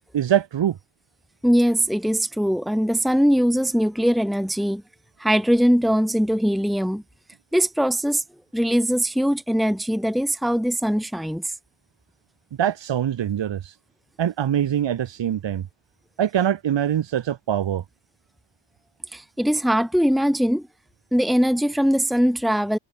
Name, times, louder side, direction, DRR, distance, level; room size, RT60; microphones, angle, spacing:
voice 1, 0.1-0.8 12.6-13.8 14.2-15.7 16.2-17.8, right 10 dB, 80° right, 2.8 m, -23 dB
voice 2, 1.4-4.8 5.2-7.0 7.5-8.2 8.5-11.5 19.1-20.7 21.1-22.8, equal, ahead, 1.8 m, -21 dB
cardioid pair, 60°, 43 cm